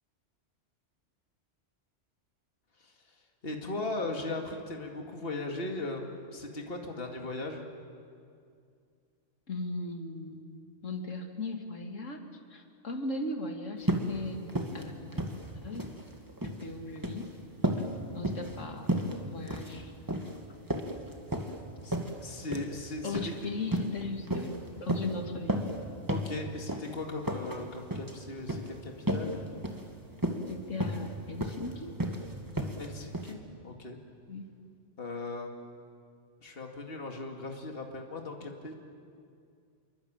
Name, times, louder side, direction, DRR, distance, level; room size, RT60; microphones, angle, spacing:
voice 1, 2.8-3.2 3.4-7.6 21.8-23.3 26.1-29.4 32.8-34.0 35.0-35.5 36.4-38.7, left 2 dB, 50° left, 2 dB, 2.4 m, -38 dB
voice 2, 9.5-10.5 10.8-12.2 12.5-14.4 14.7-15.2 15.6-16.0 16.4-17.3 18.1-18.9 19.2-19.9 23.0-25.7 30.5-32.0 34.3-34.5 38.4-38.5, left 2 dB, 85° left, 4 dB, 2.7 m, -38 dB
sound 1, 13.8-14.1 14.5-14.8 15.1-16.0 16.3-16.6 17.0-17.2 17.6-17.9 18.2-18.6 18.9-19.1 19.5-19.8 20.1-20.3 20.7-21.5 21.9-22.1 22.5-22.7 23.1-23.3 23.7-23.9 24.3-24.6 24.9-25.1 25.5-25.8 26.1-26.3 26.7-26.9 27.2-27.6 27.9-28.1 28.5-28.7 29.1-29.3 29.6-29.8 30.2-30.5 30.8-31.1 31.4-31.7 32.0-32.2 32.6-32.9 33.1-33.3, right 1 dB, 15° right, 2.2 m, -32 dB
28.5 x 23.0 x 8.9 m, 2.3 s
omnidirectional pair, 1.3 m